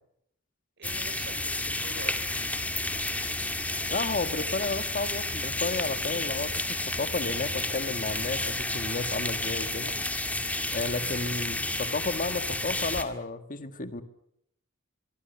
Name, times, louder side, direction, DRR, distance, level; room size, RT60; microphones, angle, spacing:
sound 1, 0.8-13.0, left 2 dB, 5° left, 1.8 m, -31 dB
voice 1, 0.8-3.1 11.0-11.2, right 2 dB, 60° right, 8 dB, 5.4 m, -46 dB
voice 2, 3.9-9.9 10.7-14.0, left 3 dB, 40° left, 10 dB, 1.7 m, -32 dB
24.0 x 22.5 x 6.8 m, 0.74 s
head